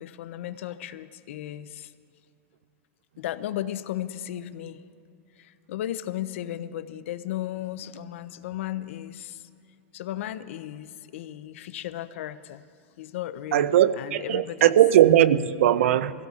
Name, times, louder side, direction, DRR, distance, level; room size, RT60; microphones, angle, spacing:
voice 1, 0.0-1.9 3.2-4.8 5.4-9.5 9.9-12.6 13.0-14.7, left 12 dB, 70° left, 0.5 m, -35 dB
voice 2, 13.5-16.1, right 11 dB, 80° right, 0.5 m, -19 dB
23.5 x 16.5 x 2.4 m
supercardioid pair, 165°, 7 cm